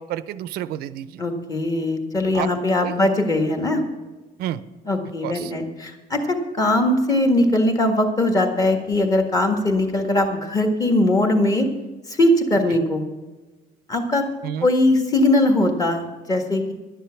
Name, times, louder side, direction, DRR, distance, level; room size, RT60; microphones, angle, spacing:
voice 1, 0.0-1.2 2.3-2.5 2.8-3.0 4.4-4.6 5.2-5.5 12.7-12.8 14.4-14.7, right 11 dB, 80° right, 15 dB, 0.6 m, -30 dB
voice 2, 1.2-3.8 4.9-11.7 12.1-13.0 13.9-14.2 14.6-16.7, left 1 dB, 25° left, 4 dB, 1.7 m, -20 dB
11.5 x 10.5 x 5.8 m, 1.2 s
cardioid pair, 170°, 16 cm